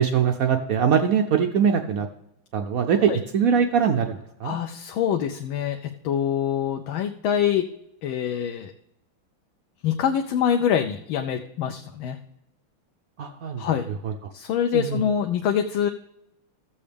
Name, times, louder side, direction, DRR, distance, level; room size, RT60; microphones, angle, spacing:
voice 1, 0.0-2.1 2.5-4.5 13.2-13.6 14.0-14.1 14.7-15.0, right 7 dB, 80° right, 5 dB, 0.8 m, -22 dB
voice 2, 4.4-5.8 6.0-7.7 8.0-8.7 9.8-12.2 13.6-13.8 14.3-15.9, left 8 dB, 80° left, 5 dB, 1.4 m, -25 dB
14.5 x 7.1 x 3.4 m, 0.82 s
omnidirectional pair, 2.2 m